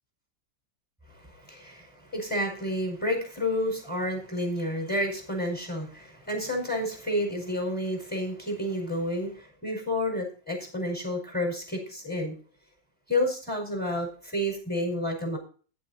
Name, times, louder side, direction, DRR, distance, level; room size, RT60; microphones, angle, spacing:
voice 1, 1.2-12.3 13.1-15.4, left 1 dB, 5° left, 1 dB, 4.9 m, -30 dB
11.0 x 8.5 x 4.1 m, 0.39 s
omnidirectional pair, 1.9 m